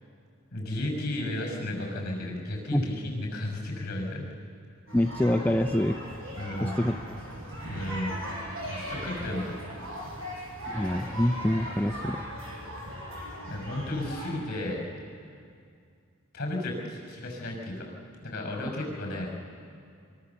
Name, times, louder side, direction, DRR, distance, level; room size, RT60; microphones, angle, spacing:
voice 1, 0.5-4.3 6.4-6.8 7.7-8.1 8.6-9.6 13.4-14.8 16.3-17.9 18.2-19.3, left 1 dB, 50° left, 2 dB, 5.5 m, -33 dB
voice 2, 4.9-6.0 6.6-7.0 10.7-12.3 18.7-18.8, left 1 dB, 10° left, 5 dB, 0.5 m, -26 dB
sound 1, 4.9-14.3, equal, 60° right, 7.4 m, -38 dB
24.0 x 23.5 x 7.0 m, 2.3 s
head